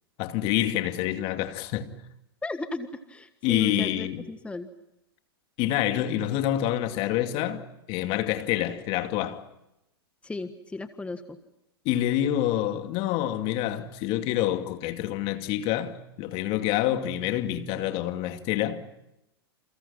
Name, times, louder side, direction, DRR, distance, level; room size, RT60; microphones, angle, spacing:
voice 1, 0.2-1.9 3.4-4.2 5.6-9.4 11.8-18.8, left 12 dB, 45° left, 2.5 m, -27 dB
voice 2, 2.4-4.7 10.2-11.4, left 3 dB, 10° left, 1.5 m, -35 dB
29.5 x 29.5 x 5.8 m
hypercardioid pair, 115°, 13 cm